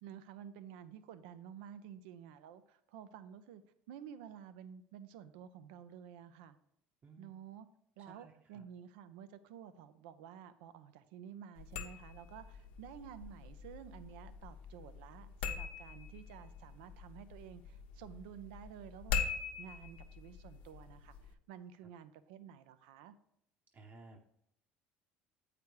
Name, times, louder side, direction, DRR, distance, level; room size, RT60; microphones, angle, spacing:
voice 1, 0.0-3.6 3.9-6.6 7.2-7.7 8.0-23.1, right 9 dB, 80° right, 12 dB, 0.5 m, -52 dB
voice 2, 8.0-8.7 23.7-24.2, right 3 dB, 40° right, 2 dB, 0.9 m, -57 dB
sound 1, 11.6-21.3, left 6 dB, 85° left, 0.8 m, -43 dB
8.2 x 5.0 x 4.7 m, 0.75 s
supercardioid pair, 80°, 5 cm